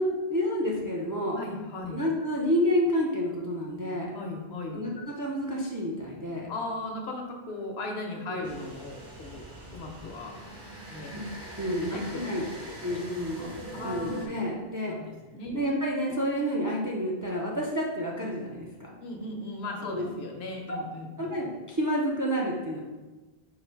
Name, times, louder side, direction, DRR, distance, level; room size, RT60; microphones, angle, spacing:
voice 1, 0.0-1.4 1.9-4.1 4.7-6.5 8.3-8.5 11.1-11.3 11.6-12.5 12.8-13.5 13.8-15.0 15.5-18.9 19.9-20.1 20.7-20.8 21.2-22.8, equal, 30° right, -2 dB, 0.4 m, -29 dB
voice 2, 1.3-2.0 4.1-4.8 6.5-9.4 9.7-10.3 10.9-11.1 11.8-12.3 12.6-13.0 13.7-14.5 14.9-15.8 19.0-21.4, left 2 dB, 80° left, 2 dB, 1.0 m, -37 dB
sound 1, 8.4-14.3, right 1 dB, 55° right, 1.1 m, -42 dB
4.7 x 2.5 x 4.5 m, 1.2 s
omnidirectional pair, 1.0 m